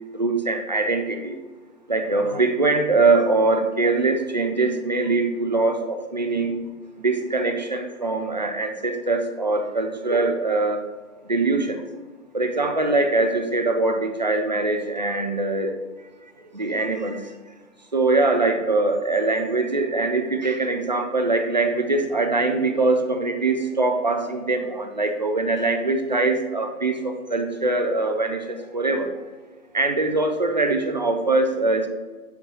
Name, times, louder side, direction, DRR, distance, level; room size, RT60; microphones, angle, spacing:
voice 1, 0.1-1.4 1.9-6.6 7.0-10.8 11.3-11.8 12.3-15.8 16.5-17.3 17.9-29.1 29.7-31.9, right 3 dB, 30° right, 4 dB, 0.5 m, -22 dB
8.3 x 3.7 x 4.3 m, 1.4 s
figure-of-eight pair, 145°, 45 cm